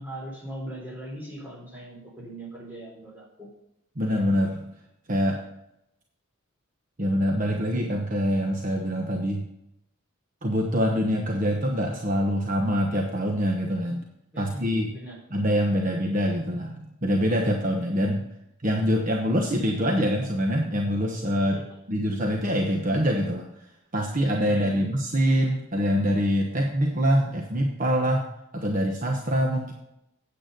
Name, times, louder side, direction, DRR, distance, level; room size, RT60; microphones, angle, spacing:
voice 1, 0.0-3.5 14.3-15.2 15.7-15.8 21.5-21.7 24.4-24.8, right 1 dB, 10° right, -4 dB, 3.6 m, -40 dB
voice 2, 4.0-4.6 5.1-5.4 7.0-9.5 10.4-14.0 14.4-14.9 15.3-18.2 18.6-21.6 21.9-23.4 23.9-28.2 28.5-29.7, equal, 40° right, 1 dB, 1.1 m, -24 dB
9.1 x 8.4 x 5.3 m, 0.83 s
head